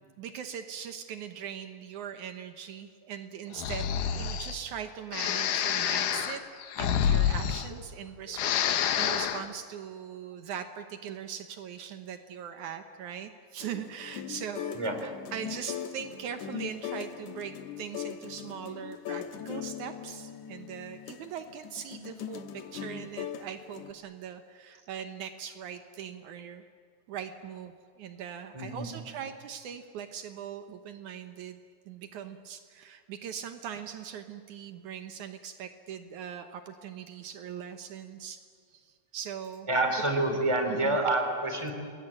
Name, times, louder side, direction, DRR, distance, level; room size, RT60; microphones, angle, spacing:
voice 1, 0.2-6.4 6.8-26.6 27.1-31.6 31.9-38.4 38.7-39.7 40.7-41.0, right 8 dB, 75° right, 8 dB, 2.5 m, -41 dB
Breathing, 3.5-4.6 5.1-8.0 8.3-9.5, left 9 dB, 85° left, 2.8 m, -28 dB
sound 1, 13.6-23.9, left 9 dB, 70° left, 2.6 m, -40 dB
voice 2, 28.5-28.9 39.7-41.7, right 2 dB, 10° right, 5 dB, 3.3 m, -27 dB
28.0 x 22.0 x 8.8 m, 2.1 s
omnidirectional pair, 3.6 m